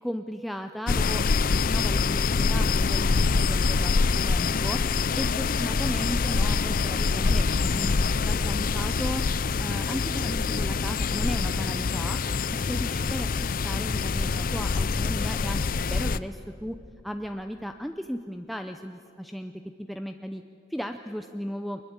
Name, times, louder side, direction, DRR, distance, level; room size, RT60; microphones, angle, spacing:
voice 1, 0.0-4.8 5.2-9.2 9.6-12.2 12.5-15.6 15.9-16.8 17.0-19.5 19.9-20.4 20.7-21.8, equal, ahead, 6 dB, 0.6 m, -35 dB
sound 1, 0.9-16.2, left 4 dB, 50° left, 0.5 m, -25 dB
23.0 x 21.0 x 8.8 m, 2.6 s
head